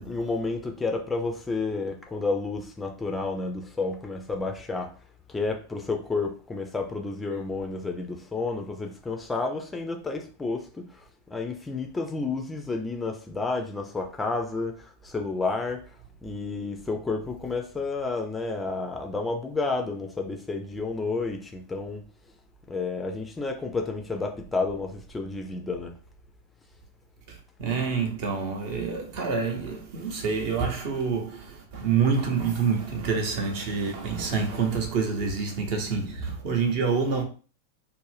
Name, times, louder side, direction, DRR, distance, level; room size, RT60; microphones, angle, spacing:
voice 1, 0.0-4.9 5.3-22.1 22.7-25.9, left 3 dB, 10° left, 0.4 m, -31 dB
voice 2, 27.3-37.2, right 5 dB, 45° right, 0.7 m, -27 dB
2.5 x 2.1 x 3.3 m
figure-of-eight pair, 90°, 0 cm